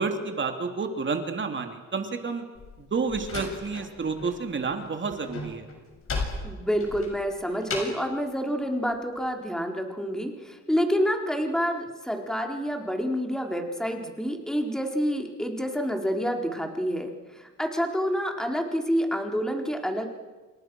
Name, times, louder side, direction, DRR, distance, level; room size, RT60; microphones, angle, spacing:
voice 1, 0.0-2.4 2.8-5.7, right 4 dB, 40° right, 5 dB, 3.1 m, -30 dB
Slam, 2.5-4.4 4.6-8.1, left 3 dB, 45° left, 6.8 m, -35 dB
voice 2, 6.4-20.1, equal, ahead, 3 dB, 4.0 m, -28 dB
28.0 x 27.5 x 6.3 m, 1.3 s
cardioid pair, 90°, 30 cm